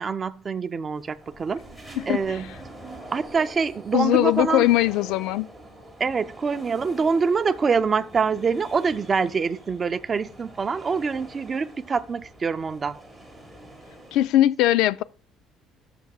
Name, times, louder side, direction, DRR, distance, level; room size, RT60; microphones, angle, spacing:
voice 1, 0.0-1.6 2.1-2.5 3.1-4.7 6.0-13.0, right 5 dB, 25° right, 0.4 m, -25 dB
sound 1, 0.9-14.3, right 1 dB, ahead, 1.7 m, -45 dB
voice 2, 2.0-2.4 3.9-5.5 14.1-15.0, left 14 dB, 75° left, 0.3 m, -20 dB
13.5 x 6.9 x 2.4 m
cardioid pair, 165°, 0 cm